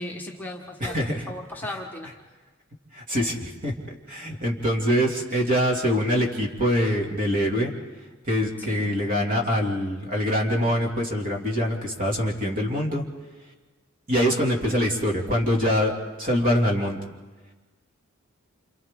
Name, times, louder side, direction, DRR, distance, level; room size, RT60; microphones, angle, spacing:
voice 1, 0.0-1.0 1.3-2.1 5.3-5.5 8.6-8.9, left 1 dB, 10° left, 0 dB, 1.3 m, -36 dB
voice 2, 0.8-1.2 1.6-1.7 2.9-7.7 8.3-13.0 14.1-15.9 16.2-17.0, equal, 40° right, 0 dB, 2.6 m, -24 dB
28.0 x 28.0 x 3.7 m, 1.3 s
head